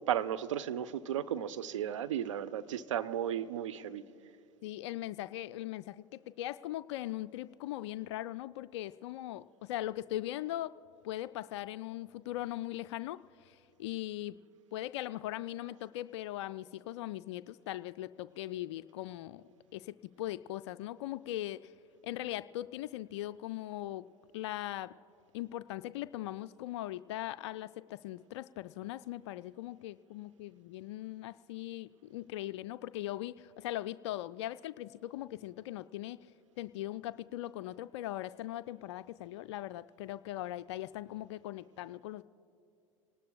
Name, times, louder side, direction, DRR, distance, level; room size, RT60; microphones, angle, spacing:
voice 1, 0.1-4.0, right 10 dB, 70° right, 11 dB, 0.6 m, -34 dB
voice 2, 4.6-6.1 6.4-10.7 11.0-14.4 14.7-19.4 19.7-21.7 22.0-24.1 24.3-24.9 25.3-36.3 36.6-42.2, left 14 dB, 60° left, 14 dB, 0.4 m, -40 dB
27.0 x 19.0 x 2.3 m, 2.7 s
figure-of-eight pair, 80°, 17 cm